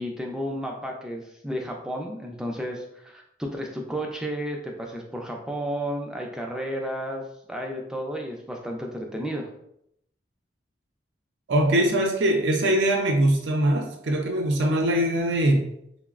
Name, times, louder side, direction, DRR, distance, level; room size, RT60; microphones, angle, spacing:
voice 1, 0.0-7.2 7.5-9.5, equal, 5° right, 0 dB, 0.3 m, -32 dB
voice 2, 11.5-15.6, right 1 dB, 75° right, 2 dB, 0.5 m, -22 dB
3.8 x 2.0 x 2.3 m, 0.75 s
head